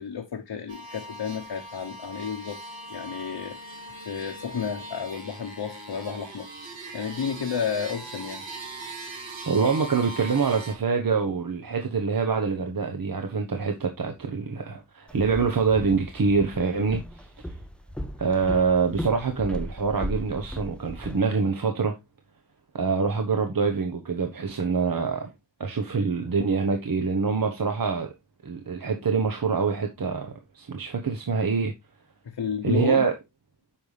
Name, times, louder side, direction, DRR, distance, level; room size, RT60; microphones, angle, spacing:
voice 1, 0.0-2.6 2.9-3.6 4.1-6.5 6.9-8.5 32.2-33.1, left 7 dB, 65° left, 1.1 m, -31 dB
sound 1, 0.7-10.7, right 2 dB, 90° right, 2.9 m, -40 dB
voice 2, 9.5-17.5 18.2-22.0 22.7-25.3 25.6-28.1 28.4-31.7 32.6-33.1, right 5 dB, 50° right, 1.1 m, -25 dB
Walk footsteps, 15.1-21.2, equal, ahead, 0.5 m, -37 dB
8.8 x 5.6 x 3.3 m
wide cardioid pair, 115°, 44 cm